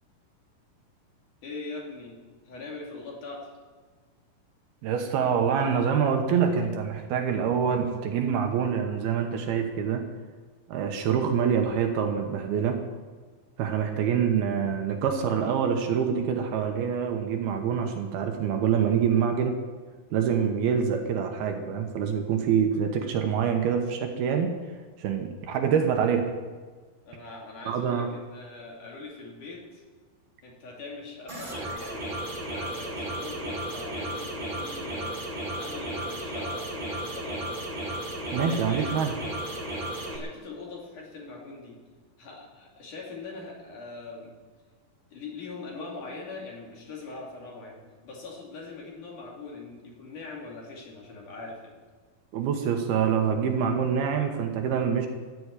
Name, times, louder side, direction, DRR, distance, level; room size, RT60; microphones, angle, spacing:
voice 1, 1.4-2.2 2.5-3.5 13.6-13.9 27.1-29.8 30.4-32.1 32.4-35.2 35.6-37.7 38.4-39.0 40.0-41.8 42.2-44.3 45.1-51.8, left 3 dB, 50° left, -2 dB, 3.8 m, -42 dB
voice 2, 4.8-10.0 10.7-12.8 13.6-19.6 20.1-24.6 25.0-26.3 27.7-28.1 38.3-39.1 52.3-55.1, right 7 dB, 70° right, 4 dB, 2.9 m, -26 dB
sound 1, 31.3-40.2, right 1 dB, 15° right, 1.8 m, -34 dB
15.0 x 7.9 x 9.8 m, 1.4 s
omnidirectional pair, 4.9 m